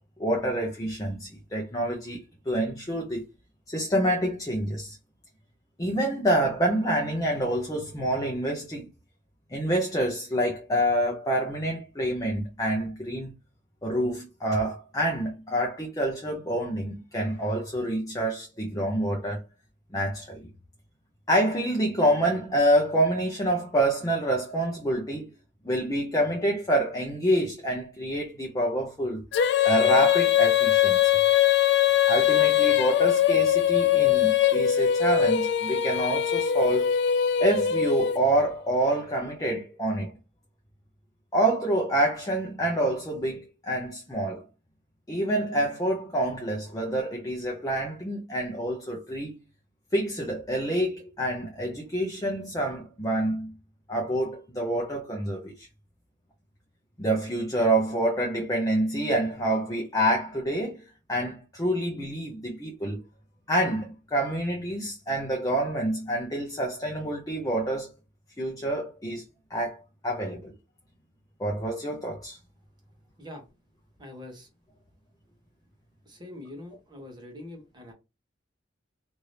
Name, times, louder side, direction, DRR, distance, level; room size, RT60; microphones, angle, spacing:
voice 1, 0.2-2.2 2.5-3.2 3.7-5.0 5.8-8.9 9.5-13.3 13.8-19.4 19.9-20.5 21.3-25.3 25.6-29.2 29.6-31.1 32.1-36.9 37.4-40.1 41.3-44.4 45.1-49.4 49.9-53.5 53.9-55.7 57.0-60.8 61.1-63.0 63.5-67.9 68.4-69.2 69.5-70.5 71.4-72.4, right 1 dB, 20° left, 0.7 m, -27 dB
Female singing, 29.3-38.5, left 10 dB, 60° left, 0.3 m, -22 dB
voice 2, 74.0-74.5 76.1-77.9, left 1 dB, 25° right, 1.1 m, -43 dB
2.9 x 2.6 x 3.2 m
head